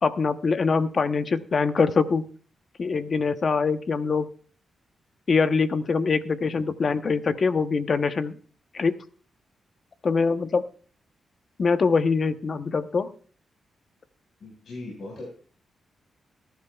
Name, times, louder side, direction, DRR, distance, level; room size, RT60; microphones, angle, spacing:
voice 1, 0.0-2.3 2.8-4.3 5.3-8.4 8.7-8.9 10.0-10.6 11.6-13.1, left 4 dB, 50° left, 10 dB, 0.9 m, -23 dB
voice 2, 14.4-15.2, left 2 dB, 65° left, -2 dB, 5.2 m, -38 dB
19.0 x 11.5 x 2.4 m, 0.43 s
cardioid pair, 75°, 0 cm